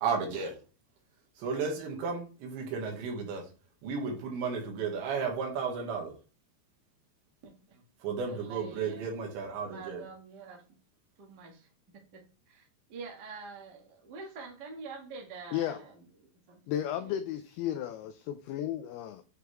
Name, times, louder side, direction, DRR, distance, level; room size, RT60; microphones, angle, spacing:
voice 1, 0.0-0.5 1.4-3.4 3.8-6.1 8.0-10.0, right 5 dB, 85° right, 4.0 m, -33 dB
voice 2, 7.4-7.8 8.2-9.1 9.6-10.6 11.2-11.7 12.1-16.6 17.0-17.1 17.7-17.8, right 4 dB, 55° right, 1.1 m, -46 dB
voice 3, 16.7-19.2, left 11 dB, 85° left, 2.2 m, -34 dB
8.2 x 4.8 x 3.4 m
omnidirectional pair, 5.1 m